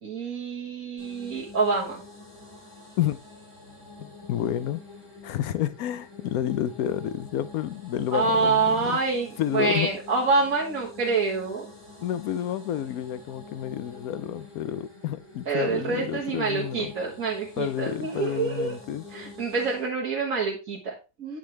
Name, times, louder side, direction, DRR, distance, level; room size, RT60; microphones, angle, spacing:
voice 1, 0.0-2.0 8.1-11.7 15.5-18.8 19.1-21.4, right 4 dB, 65° right, 1.9 m, -26 dB
sound 1, 1.0-19.9, left 3 dB, 20° left, 3.4 m, -47 dB
voice 2, 4.0-4.8 5.2-9.0 9.4-9.9 12.0-16.9 17.6-19.0, left 11 dB, 90° left, 1.1 m, -30 dB
9.6 x 6.3 x 3.3 m
omnidirectional pair, 1.5 m